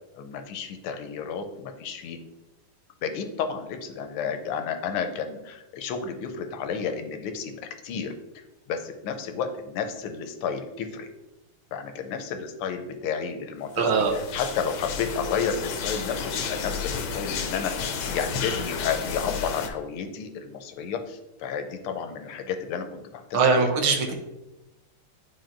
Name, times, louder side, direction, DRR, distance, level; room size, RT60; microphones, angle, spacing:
voice 1, 0.1-2.2 3.0-8.1 8.7-11.1 11.7-23.7, left 6 dB, 90° left, 6 dB, 1.6 m, -32 dB
sound 1, 13.8-19.7, left 6 dB, 70° left, 1.3 m, -32 dB
voice 2, 13.8-14.1 23.3-24.1, right 4 dB, 75° right, 2 dB, 1.8 m, -21 dB
9.3 x 4.4 x 2.5 m, 0.98 s
omnidirectional pair, 2.4 m